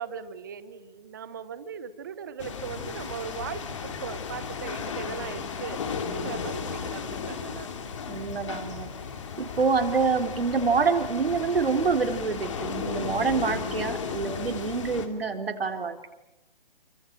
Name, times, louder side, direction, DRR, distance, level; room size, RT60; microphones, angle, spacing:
voice 1, 0.0-7.8, right 7 dB, 20° right, 13 dB, 1.1 m, -39 dB
sound 1, 2.4-15.1, left 6 dB, 30° left, 2.6 m, -35 dB
voice 2, 8.1-8.9 9.4-16.1, right 5 dB, 75° right, 5 dB, 4.3 m, -26 dB
29.0 x 24.5 x 7.7 m, 0.91 s
hypercardioid pair, 175°, 30 cm